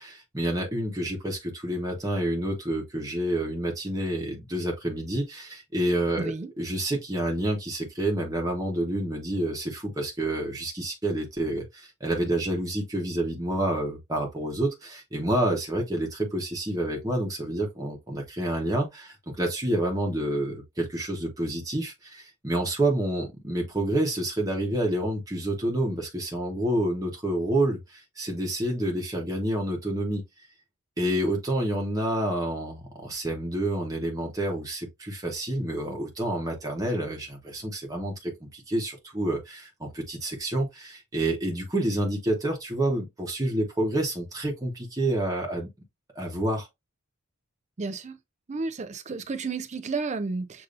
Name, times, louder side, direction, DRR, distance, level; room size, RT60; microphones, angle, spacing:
voice 1, 0.0-30.2 31.0-45.7 46.1-46.7, right 1 dB, 15° right, 1.0 m, -28 dB
voice 2, 6.2-6.5 47.8-48.2 48.5-50.6, right 4 dB, 30° right, 0.4 m, -32 dB
6.6 x 2.7 x 2.5 m
head